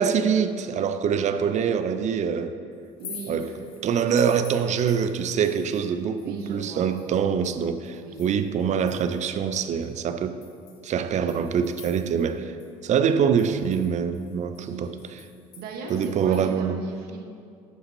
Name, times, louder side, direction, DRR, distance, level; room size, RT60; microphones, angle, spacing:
voice 1, 0.0-2.6 3.3-3.5 3.8-10.4 10.8-12.6 12.8-14.9 15.9-16.8, right 7 dB, 45° right, 0.5 m, -24 dB
sound 1, 2.8-5.9 6.2-9.4 9.8-9.9 10.4-12.4 12.6-12.7 13.0-16.5, left 6 dB, 60° left, 1.1 m, -48 dB
voice 2, 3.0-3.6 6.2-6.9 7.9-8.3 11.1-11.4 14.6-15.0 15.6-17.2, right 4 dB, 65° right, 1.2 m, -38 dB
11.0 x 5.7 x 2.7 m
hypercardioid pair, 65°, 17 cm